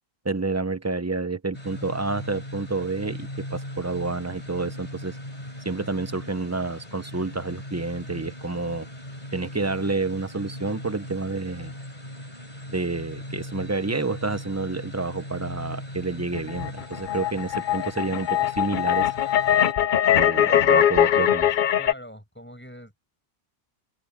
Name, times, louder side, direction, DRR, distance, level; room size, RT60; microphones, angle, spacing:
voice 1, 0.2-5.2 5.6-8.9 9.3-11.7 12.7-19.1 20.2-21.5, right 3 dB, 15° right, 0.8 m, -29 dB
sound 1, 1.5-19.7, left 1 dB, 40° left, 4.7 m, -39 dB
sound 2, 16.3-21.9, left 10 dB, 55° left, 0.7 m, -21 dB
voice 2, 21.8-23.0, equal, 10° left, 6.9 m, -43 dB
omnidirectional pair, 1.1 m